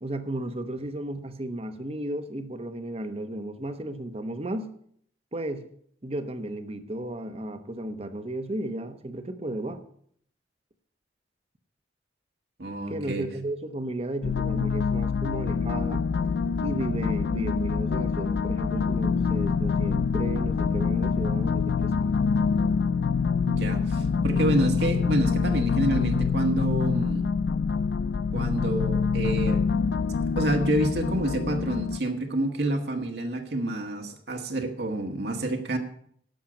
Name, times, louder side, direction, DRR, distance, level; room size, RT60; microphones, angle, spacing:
voice 1, 0.0-4.7 5.3-5.7 6.0-9.8 12.9-16.1 16.6-22.3, right 1 dB, 35° right, 9 dB, 1.0 m, -34 dB
voice 2, 12.6-13.2 23.5-27.3 28.3-29.6 30.4-35.8, right 1 dB, 65° right, 3 dB, 1.6 m, -28 dB
sound 1, 14.2-32.0, left 5 dB, 65° left, 0.4 m, -25 dB
11.5 x 6.6 x 8.8 m, 0.64 s
head